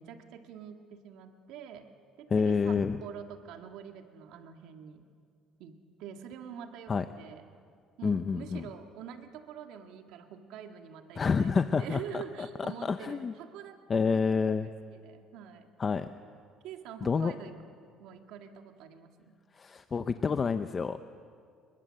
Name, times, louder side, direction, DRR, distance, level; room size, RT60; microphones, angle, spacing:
voice 1, 0.0-1.9 2.2-5.0 5.6-7.5 8.0-14.3 14.6-15.7 16.6-17.6 18.0-19.4, right 8 dB, 75° right, 6 dB, 1.8 m, -46 dB
voice 2, 2.3-3.0 6.9-7.0 8.0-8.7 11.2-12.2 12.8-13.3 13.9-14.7 15.8-16.1 17.0-17.3 19.6-21.0, left 5 dB, 25° left, 10 dB, 0.7 m, -28 dB
27.0 x 22.0 x 7.6 m, 2.2 s
cardioid pair, 140°, 0 cm